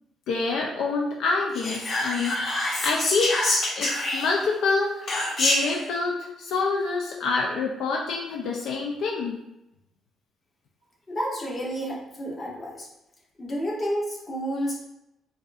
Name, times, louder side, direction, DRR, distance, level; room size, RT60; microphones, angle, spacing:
voice 1, 0.3-3.3 3.8-5.0 5.4-9.3, left 4 dB, 85° left, -1 dB, 0.4 m, -27 dB
Whispering, 1.5-4.5 5.1-5.8, left 1 dB, 55° left, 1.2 m, -26 dB
voice 2, 11.1-12.9 13.4-14.8, equal, 35° left, -4 dB, 1.2 m, -30 dB
4.5 x 2.6 x 2.4 m, 0.88 s
cardioid pair, 90°, 0 cm